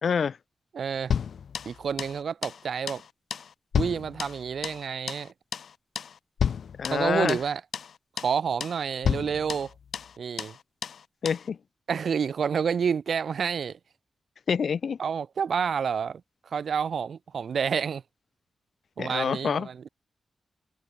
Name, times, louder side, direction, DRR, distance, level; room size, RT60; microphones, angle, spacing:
voice 1, 0.0-0.4 6.8-7.4 11.2-11.6 14.5-15.0 19.0-19.7, left 6 dB, 65° left, 2.9 m, -26 dB
voice 2, 0.7-1.1 1.6-3.0 3.7-5.3 6.8-7.6 8.2-9.7 10.2-10.5 11.9-13.8 15.0-16.2 16.5-18.0 19.0-19.9, right 6 dB, 70° right, 1.6 m, -29 dB
sound 1, 1.1-2.2 2.4-2.6 2.9-3.1 3.3-4.8 5.1-5.3 5.5-5.7 6.0-6.1 6.4-7.5 7.7-7.9 8.2-8.4 8.6-8.8 9.0-10.1 10.4-10.6 10.8-11.0 11.3-11.4, left 7 dB, 80° left, 1.0 m, -31 dB
wide cardioid pair, 145°, 0 cm